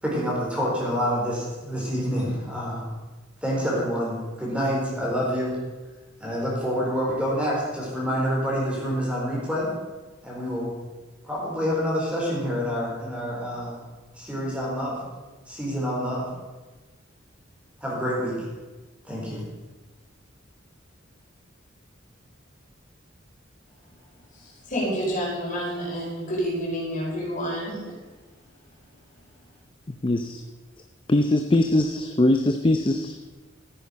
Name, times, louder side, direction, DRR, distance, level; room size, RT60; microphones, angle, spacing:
voice 1, 0.0-2.9 3.4-5.6 6.2-9.7 10.2-10.7 11.2-13.8 14.2-15.0 15.5-16.3 17.8-18.4 19.0-19.4, equal, 5° right, -5 dB, 4.5 m, -27 dB
voice 2, 24.3-27.8, equal, 45° left, -3 dB, 4.8 m, -29 dB
voice 3, 30.0-30.4 31.1-33.3, left 1 dB, 25° left, 6 dB, 0.6 m, -22 dB
14.0 x 9.7 x 5.4 m, 1.2 s
head